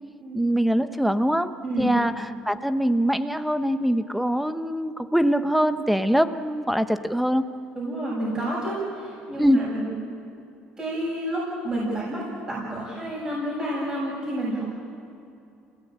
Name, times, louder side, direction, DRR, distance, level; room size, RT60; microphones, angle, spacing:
voice 1, 0.3-7.4 9.4-9.6, equal, ahead, 10 dB, 0.9 m, -23 dB
voice 2, 1.6-1.9 7.8-9.9 10.8-14.7, right 1 dB, 25° right, -6 dB, 7.5 m, -29 dB
28.5 x 18.0 x 8.9 m, 2.6 s
cardioid pair, 140°, 3 cm